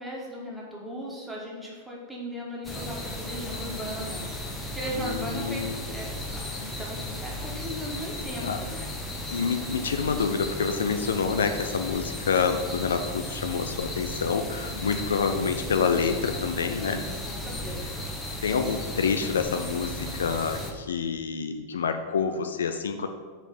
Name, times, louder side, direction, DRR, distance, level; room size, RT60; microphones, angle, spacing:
voice 1, 0.0-8.9 14.6-15.1 16.9-17.9, equal, 5° right, -4 dB, 1.7 m, -38 dB
sound 1, 2.6-20.7, left 1 dB, 10° left, 0.9 m, -35 dB
voice 2, 4.9-5.8 8.4-8.6 9.3-17.0 18.4-23.1, left 6 dB, 65° left, 7 dB, 0.4 m, -27 dB
5.2 x 4.9 x 5.4 m, 1.5 s
figure-of-eight pair, 90°, 0 cm